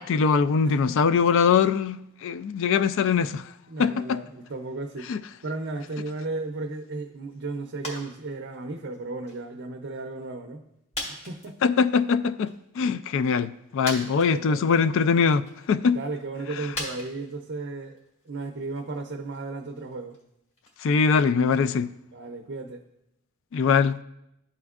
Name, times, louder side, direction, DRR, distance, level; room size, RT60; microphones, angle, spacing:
voice 1, 0.0-3.4 3.8-4.2 5.1-5.2 11.6-12.5 12.8-16.0 20.8-21.9 23.5-24.0, left 5 dB, 60° left, 0.3 m, -22 dB
voice 2, 0.6-1.0 3.7-5.1 5.4-10.6 11.1-11.6 14.2-14.7 15.9-18.0 18.2-20.2 22.1-22.8, right 3 dB, 50° right, 0.5 m, -35 dB
sound 1, 7.8-8.2 8.4-9.6 10.1-10.2 10.9-12.0 12.4-12.5 13.4-13.5 13.8-14.7 15.1-15.7 16.7-20.8 21.1-21.2, left 1 dB, 30° left, 2.0 m, -39 dB
12.5 x 4.3 x 2.4 m
head